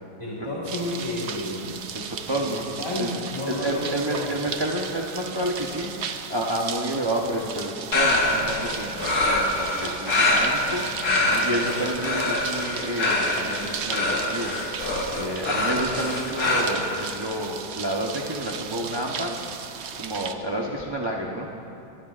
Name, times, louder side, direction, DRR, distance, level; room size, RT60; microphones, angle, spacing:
voice 1, 0.2-1.8 2.3-2.5 2.8-4.4 11.1-11.4, left 1 dB, 20° left, -7 dB, 1.5 m, -31 dB
sound 1, 0.6-20.3, right 7 dB, 75° right, 0.6 m, -36 dB
voice 2, 1.9-2.6 3.0-3.1 3.5-5.9 6.3-19.4 19.8-21.5, right 1 dB, 25° right, -2 dB, 0.6 m, -30 dB
sound 2, 7.9-16.6, left 2 dB, 50° left, 2.0 m, -24 dB
24.0 x 16.5 x 2.5 m, 2.7 s
omnidirectional pair, 2.0 m